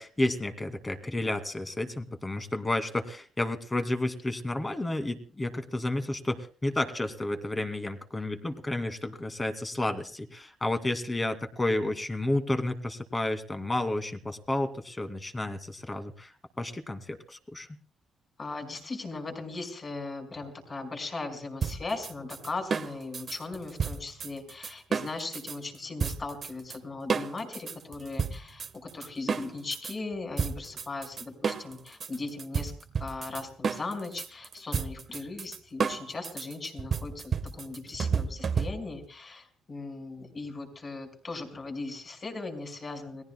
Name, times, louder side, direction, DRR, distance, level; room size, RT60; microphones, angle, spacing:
voice 1, 0.0-16.3 16.6-17.7, left 1 dB, 20° left, 7 dB, 2.3 m, -31 dB
voice 2, 18.4-32.7 33.0-43.2, left 3 dB, 35° left, 4 dB, 5.4 m, -38 dB
sound 1, 21.6-25.6 26.0-26.8 27.1-29.9 30.4-39.0, right 6 dB, 45° right, 1.2 m, -32 dB
30.0 x 19.5 x 2.2 m, 0.40 s
cardioid pair, 90°, 0 cm